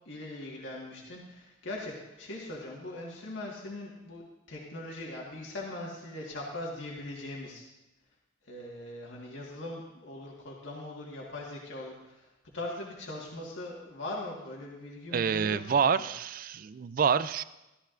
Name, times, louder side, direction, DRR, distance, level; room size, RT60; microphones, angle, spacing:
voice 1, 0.1-7.6 8.4-16.1, left 1 dB, 75° left, -3 dB, 1.7 m, -41 dB
voice 2, 15.1-17.4, right 6 dB, 45° right, 15 dB, 0.3 m, -27 dB
14.5 x 13.0 x 2.6 m, 0.99 s
head